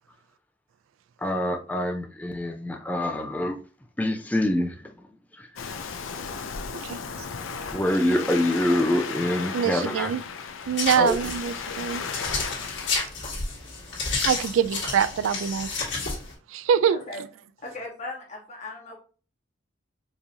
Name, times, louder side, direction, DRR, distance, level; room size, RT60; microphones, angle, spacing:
voice 1, 1.2-3.6 4.0-5.1 5.3-5.5 7.7-10.1 11.0-11.2, left 1 dB, 10° left, 0.3 m, -25 dB
Waves surf, 5.6-12.9, left 5 dB, 80° left, 0.5 m, -35 dB
voice 2, 9.5-10.2 10.7-12.0 12.3-12.6 14.3-15.7 16.5-17.0, right 8 dB, 80° right, 0.3 m, -24 dB
sound 1, 10.8-16.3, left 4 dB, 60° left, 1.7 m, -31 dB
voice 3, 16.9-17.2 17.6-19.0, left 2 dB, 35° left, 1.1 m, -37 dB
4.7 x 2.7 x 2.7 m
head